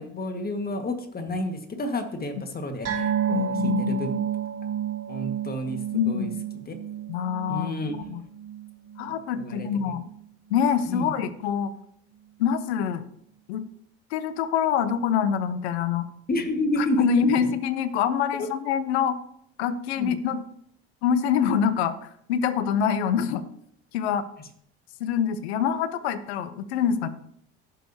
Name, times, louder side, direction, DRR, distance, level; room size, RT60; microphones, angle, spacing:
voice 1, 0.0-4.1 5.1-5.8 6.1-6.3 6.7-6.8 7.5-8.0 9.4-9.7 10.9-11.1 16.3-17.0 17.4-17.5 18.4-18.5 20.0-20.1, left 1 dB, 30° left, 6 dB, 1.8 m, -30 dB
sound 1, 2.8-9.7 9.9-10.2 10.5-10.6, right 9 dB, 50° right, 3.6 m, -31 dB
voice 2, 3.3-4.2 5.9-6.4 7.1-7.7 8.1-8.2 9.0-10.0 10.5-11.7 12.4-13.0 13.5-13.6 14.1-16.1 16.8-19.2 19.6-20.4 21.0-23.4 23.9-24.2 25.0-27.1, left 7 dB, 80° left, 14 dB, 0.8 m, -25 dB
15.5 x 6.6 x 2.8 m, 0.68 s
hypercardioid pair, 65°, 32 cm